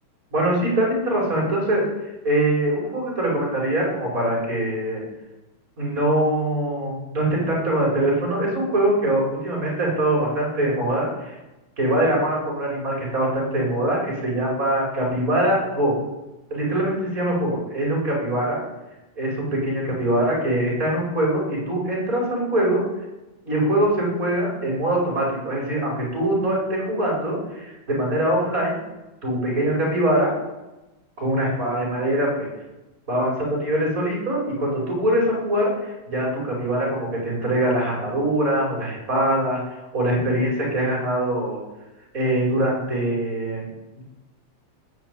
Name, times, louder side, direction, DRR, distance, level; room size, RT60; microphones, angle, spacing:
voice 1, 0.3-1.8 2.2-5.0 5.8-11.4 11.8-15.9 16.5-18.6 19.2-22.8 23.5-28.8 29.2-30.3 31.2-32.5 33.1-39.6 39.9-41.6 42.1-43.7 44.0-44.1, right 1 dB, 25° right, -3 dB, 5.7 m, -23 dB
18.5 x 6.7 x 8.6 m, 1.0 s
omnidirectional pair, 3.3 m